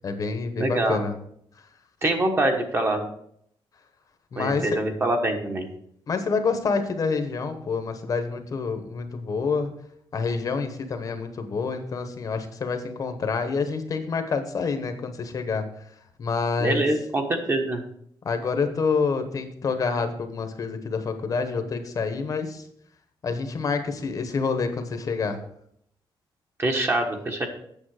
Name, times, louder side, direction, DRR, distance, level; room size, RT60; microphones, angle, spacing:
voice 1, 0.0-1.1 4.3-4.8 6.1-9.7 10.1-15.6 16.2-16.9 18.2-22.6 23.2-25.4, left 4 dB, 40° left, 8 dB, 1.0 m, -27 dB
voice 2, 0.6-1.1 2.0-3.0 4.4-5.7 16.6-17.8 26.6-27.5, right 2 dB, 25° right, 3 dB, 1.2 m, -24 dB
8.8 x 7.0 x 4.8 m, 0.70 s
wide cardioid pair, 165°, 9 cm